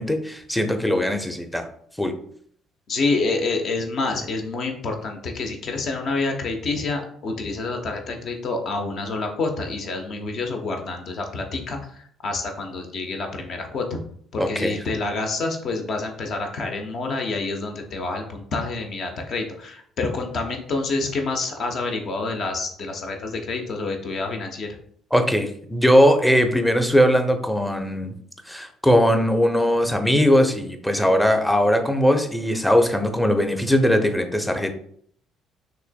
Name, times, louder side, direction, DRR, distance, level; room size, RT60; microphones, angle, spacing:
voice 1, 0.0-1.7 2.0-2.1 14.4-14.8 25.1-28.1 28.5-34.7, equal, 5° left, 5 dB, 0.7 m, -20 dB
voice 2, 2.9-14.0 14.3-24.7, left 3 dB, 50° left, 4 dB, 0.8 m, -28 dB
5.8 x 3.1 x 2.2 m, 0.63 s
figure-of-eight pair, 50°, 0 cm